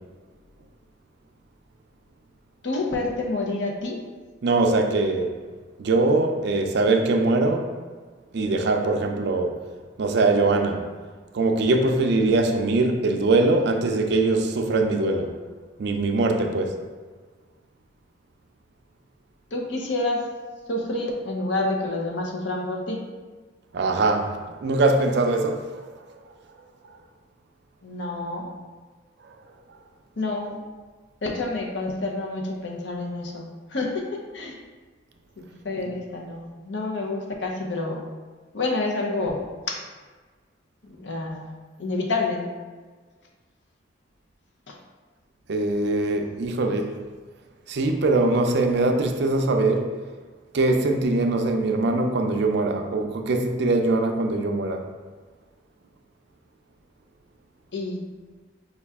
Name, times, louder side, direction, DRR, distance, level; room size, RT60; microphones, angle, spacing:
voice 1, 2.6-4.0 19.5-20.2 20.7-23.0 27.8-28.5 30.2-30.6 31.2-34.6 35.4-38.1 38.5-39.8 41.0-42.5 44.7-44.8 57.7-58.0, left 2 dB, 70° left, 0 dB, 0.7 m, -28 dB
voice 2, 4.4-5.4 5.8-7.7 8.3-9.6 10.0-10.9 11.3-15.3 15.8-16.8 23.7-26.2 26.8-27.0 29.2-29.3 45.5-47.0 47.7-49.9 50.5-54.9, right 2 dB, 65° right, 5 dB, 0.4 m, -22 dB
5.4 x 2.3 x 3.5 m, 1.4 s
head